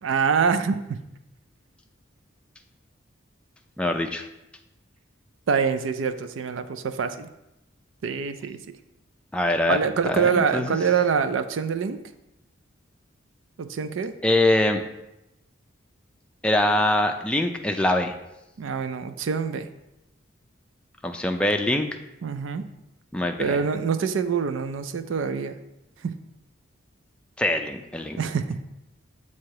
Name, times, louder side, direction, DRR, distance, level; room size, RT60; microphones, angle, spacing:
voice 1, 0.0-1.0 5.5-7.3 8.0-8.6 9.7-12.0 13.6-14.2 18.6-19.7 22.2-22.7 23.4-25.5 26.0-26.1 28.2-28.6, right 6 dB, 80° right, 10 dB, 0.4 m, -25 dB
voice 2, 3.8-4.3 9.3-9.8 10.0-10.8 14.2-14.8 16.4-18.1 21.0-21.9 23.1-23.6 27.4-28.2, left 1 dB, 5° left, 4 dB, 0.3 m, -23 dB
7.4 x 2.9 x 4.6 m, 0.89 s
head